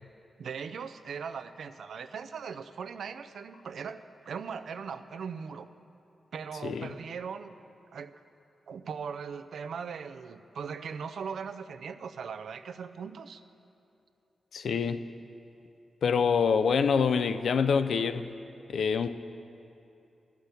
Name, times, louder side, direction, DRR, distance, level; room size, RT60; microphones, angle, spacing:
voice 1, 0.4-5.7 6.3-7.5 7.9-8.1 8.7-13.4, right 6 dB, 80° right, 0.4 m, -39 dB
voice 2, 14.5-15.0 16.0-18.3 18.7-19.1, left 6 dB, 75° left, 0.4 m, -26 dB
12.0 x 5.8 x 8.2 m
wide cardioid pair, 120°, 0 cm